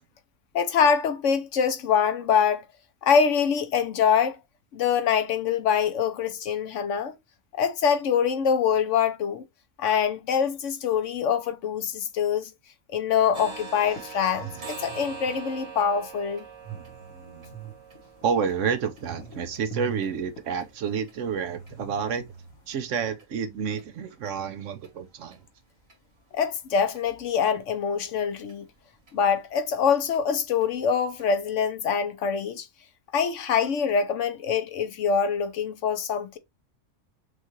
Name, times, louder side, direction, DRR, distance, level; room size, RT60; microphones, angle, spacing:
voice 1, 0.5-2.6 3.0-4.4 4.7-7.1 7.5-9.4 9.8-12.5 12.9-16.4 26.3-28.7 29.1-32.7 33.1-36.4, left 7 dB, 65° left, 1.0 m, -24 dB
sound 1, 13.2-22.8, right 6 dB, 80° left, 1.8 m, -44 dB
sound 2, 13.3-21.1 21.6-21.7 22.1-22.3 22.7-22.8 23.2-23.3 23.8-23.9 24.2-24.3 24.8-24.9 25.3-25.4 25.9-26.0 26.4-26.5 26.9-27.0 27.4-27.5 28.0-28.1 28.5-28.6 29.1-29.2 29.5-29.6 30.1-30.2 30.6-30.7 31.2-31.3, right 5 dB, 50° right, 2.2 m, -43 dB
voice 2, 18.2-22.2 22.7-25.4, right 6 dB, 70° right, 0.9 m, -29 dB
6.3 x 2.4 x 3.0 m
omnidirectional pair, 1.4 m